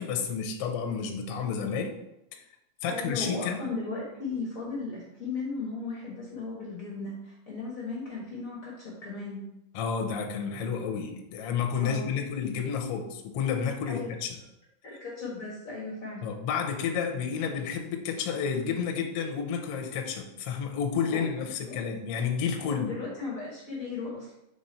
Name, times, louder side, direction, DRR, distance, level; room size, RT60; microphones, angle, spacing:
voice 1, 0.0-1.9 2.4-2.5 2.8-3.7 9.7-14.4 16.2-23.0, left 6 dB, 70° left, 3 dB, 1.5 m, -31 dB
voice 2, 2.9-9.4 11.8-12.1 13.8-14.1 14.8-16.3 21.1-21.8 22.6-24.3, left 3 dB, 55° left, -4 dB, 0.9 m, -36 dB
6.7 x 3.3 x 4.3 m, 0.85 s
omnidirectional pair, 3.4 m